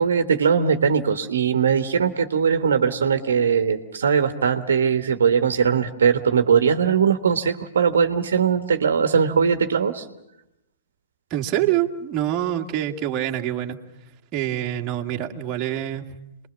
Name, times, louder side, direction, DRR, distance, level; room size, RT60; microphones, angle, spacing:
voice 1, 0.0-10.0, right 6 dB, 70° right, 8 dB, 1.4 m, -20 dB
voice 2, 11.3-13.8 14.3-16.0, right 12 dB, 30° right, 2 dB, 1.9 m, -25 dB
27.5 x 21.0 x 7.3 m, 0.87 s
figure-of-eight pair, 115°, 0 cm